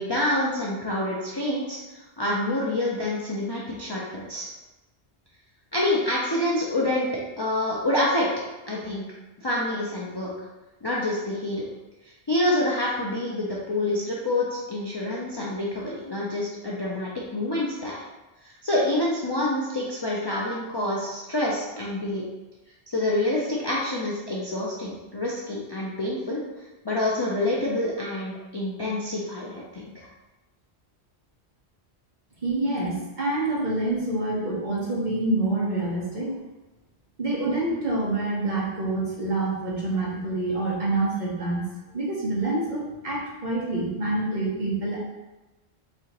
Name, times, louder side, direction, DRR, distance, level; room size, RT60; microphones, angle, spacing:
voice 1, 0.0-4.5 5.7-8.3 8.7-9.0 9.4-10.3 10.8-11.6 12.3-18.0 18.4-22.2 22.9-26.4 26.8-30.1, left 1 dB, 40° left, -5 dB, 0.4 m, -27 dB
voice 2, 32.4-36.4 37.2-41.6 41.9-45.0, right 2 dB, 45° right, -5 dB, 1.0 m, -27 dB
4.2 x 2.8 x 2.9 m, 1.1 s
omnidirectional pair, 1.1 m